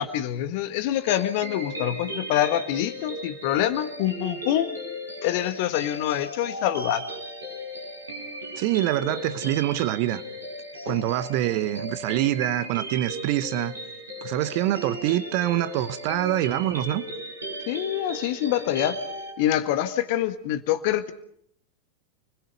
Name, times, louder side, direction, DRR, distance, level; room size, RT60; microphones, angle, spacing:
voice 1, 0.0-4.7 5.2-7.0 10.9-11.0 17.7-19.0 19.4-21.1, left 12 dB, 50° left, 1.7 m, -25 dB
sound 1, 1.0-19.3, equal, 75° right, 5.8 m, -36 dB
voice 2, 8.6-10.2 10.8-13.7 14.2-17.0, right 14 dB, 45° right, 1.0 m, -25 dB
29.0 x 21.0 x 5.4 m
figure-of-eight pair, 90°, 0 cm